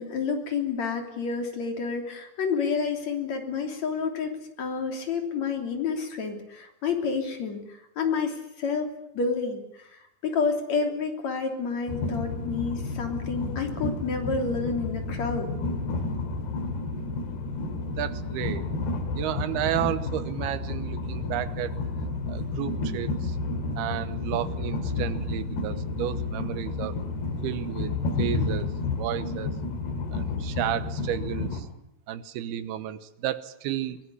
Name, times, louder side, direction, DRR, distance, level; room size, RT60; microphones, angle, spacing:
voice 1, 0.0-15.5, left 5 dB, 45° left, 4 dB, 4.1 m, -29 dB
Train, 11.9-31.6, left 3 dB, 85° left, 4.4 m, -31 dB
voice 2, 18.0-18.7 19.1-21.8 22.3-23.4 23.8-27.0 27.4-29.6 30.1-31.7 32.1-34.0, right 12 dB, 80° right, 13 dB, 3.0 m, -32 dB
23.0 x 17.5 x 9.8 m, 0.82 s
omnidirectional pair, 4.6 m